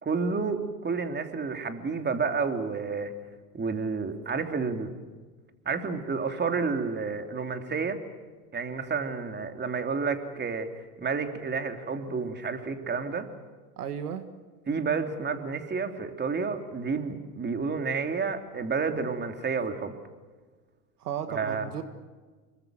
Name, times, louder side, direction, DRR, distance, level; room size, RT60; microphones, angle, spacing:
voice 1, 0.0-3.1 3.5-4.9 5.6-8.0 8.5-10.7 11.0-13.3 14.7-20.0 21.3-21.6, right 5 dB, 25° right, 6 dB, 3.1 m, -30 dB
voice 2, 13.8-14.3 21.0-21.8, right 8 dB, 90° right, 10 dB, 2.0 m, -34 dB
26.5 x 23.0 x 7.8 m, 1.4 s
hypercardioid pair, 95°, 44 cm